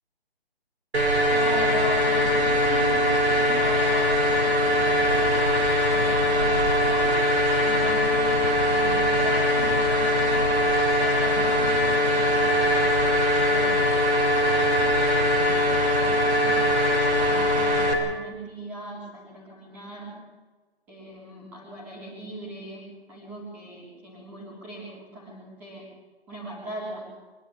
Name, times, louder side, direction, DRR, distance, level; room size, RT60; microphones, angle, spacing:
sound 1, 0.9-17.9, left 1 dB, 90° right, 6.0 m, -21 dB
voice 1, 1.3-5.3 5.9-7.1 7.6-10.6 10.9-14.8 15.2-20.1 20.9-25.8 26.3-27.0, right 1 dB, 5° right, -6 dB, 3.6 m, -38 dB
24.5 x 12.5 x 10.0 m, 1.3 s
hypercardioid pair, 180°, 32 cm